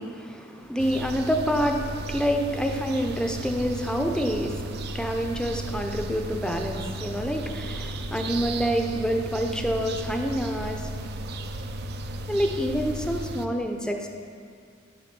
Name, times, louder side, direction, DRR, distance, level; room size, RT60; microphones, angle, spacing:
voice 1, 0.0-10.9 12.3-14.1, equal, 5° left, 3 dB, 0.5 m, -27 dB
sound 1, 0.8-13.5, right 1 dB, 55° right, 0.4 m, -35 dB
10.5 x 3.6 x 5.9 m, 2.3 s
head